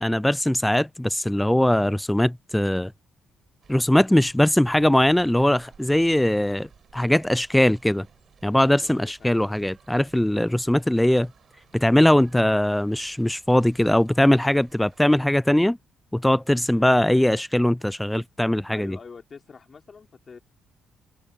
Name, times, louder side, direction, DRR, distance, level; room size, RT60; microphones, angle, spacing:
voice 1, 0.0-2.9 3.7-8.1 8.4-11.3 11.7-15.8 16.1-19.0, left 1 dB, 5° left, 0.4 m, -21 dB
sound 1, 3.6-15.2, right 7 dB, 50° right, 5.5 m, -56 dB
voice 2, 8.7-9.3 16.8-16.9 18.7-20.4, left 5 dB, 40° left, 5.4 m, -45 dB
open air
supercardioid pair, 70°, 0 cm